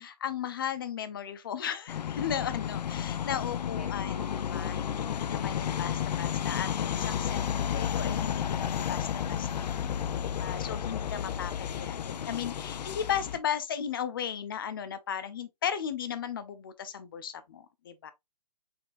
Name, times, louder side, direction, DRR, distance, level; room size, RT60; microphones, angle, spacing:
voice 1, 0.0-9.5 10.4-18.1, left 8 dB, 35° left, 0.6 m, -36 dB
sound 1, 1.9-13.4, left 9 dB, 75° left, 0.5 m, -32 dB
voice 2, 3.7-5.2 9.5-10.7 11.7-12.0, equal, 5° left, 0.9 m, -50 dB
4.3 x 4.2 x 2.4 m
hypercardioid pair, 170°, 21 cm